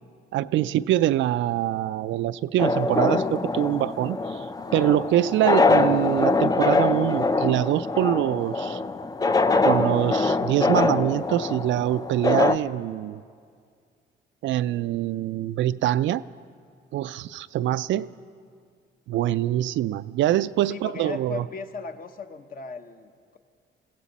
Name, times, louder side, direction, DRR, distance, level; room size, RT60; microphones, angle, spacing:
voice 1, 0.3-4.5 4.7-8.8 9.6-13.2 14.4-16.2 16.9-18.1 19.1-21.5, right 13 dB, 70° right, 15 dB, 0.4 m, -24 dB
sound 1, 2.6-12.6, left 3 dB, 20° left, 0.5 m, -23 dB
voice 2, 20.7-23.4, left 4 dB, 45° left, 7 dB, 1.0 m, -37 dB
21.0 x 15.5 x 4.1 m, 2.1 s
cardioid pair, 90°, 20 cm